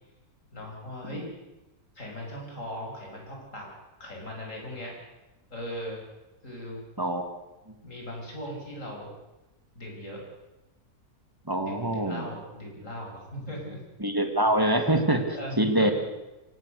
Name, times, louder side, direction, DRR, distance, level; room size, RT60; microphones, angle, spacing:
voice 1, 0.5-1.3 1.9-3.7 4.0-4.9 5.5-6.0 6.4-6.8 7.8-9.1 9.7-10.2 11.6-13.8 15.3-15.9, equal, 55° left, 0 dB, 6.5 m, -38 dB
voice 2, 11.5-12.2 14.0-15.2 15.6-15.9, right 1 dB, 15° right, 6 dB, 2.2 m, -24 dB
24.0 x 18.0 x 6.6 m, 1.0 s
omnidirectional pair, 1.6 m